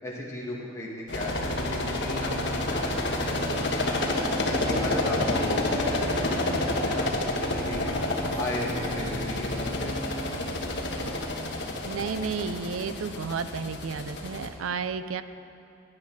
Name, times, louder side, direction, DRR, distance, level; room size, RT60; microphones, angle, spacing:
voice 1, 0.0-4.0 4.6-7.9 8.4-10.0, left 1 dB, 15° left, -4 dB, 2.0 m, -35 dB
sound 1, 1.1-14.5, left 1 dB, 60° left, 1.3 m, -29 dB
voice 2, 11.9-15.2, right 5 dB, 90° right, 12 dB, 0.5 m, -32 dB
14.0 x 8.7 x 6.1 m, 2.8 s
head